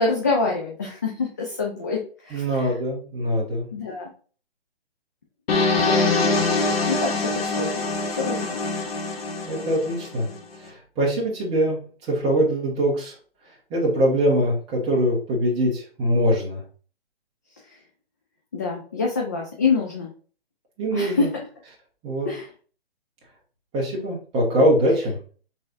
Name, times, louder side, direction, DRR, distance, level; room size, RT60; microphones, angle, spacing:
voice 1, 0.0-2.8 3.7-4.1 5.8-6.4 6.9-8.8 17.7-17.8 18.5-20.1 20.9-21.4 22.3-22.5, left 4 dB, 20° left, -2 dB, 0.3 m, -27 dB
voice 2, 2.3-3.7 9.4-10.3 10.6-11.8 12.1-13.1 13.7-16.6 20.8-21.3 22.0-22.3 23.7-25.2, equal, 20° right, -4 dB, 1.5 m, -22 dB
sound 1, 5.5-10.4, left 3 dB, 70° left, 1.1 m, -24 dB
5.4 x 3.3 x 2.6 m, 0.41 s
hypercardioid pair, 145°, 31 cm